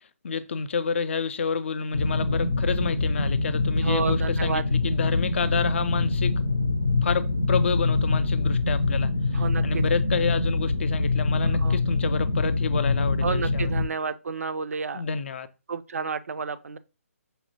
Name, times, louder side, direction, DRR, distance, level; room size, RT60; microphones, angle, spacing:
voice 1, 0.2-6.4 7.0-9.1 9.6-13.7 14.9-15.5, left 5 dB, 50° left, 0.3 m, -29 dB
sound 1, 1.9-13.9, left 3 dB, 85° left, 0.6 m, -24 dB
voice 2, 3.8-4.6 9.3-9.8 11.6-11.8 13.2-15.0 15.7-16.8, right 5 dB, 70° right, 0.3 m, -30 dB
5.3 x 2.1 x 2.8 m
figure-of-eight pair, 145°, 8 cm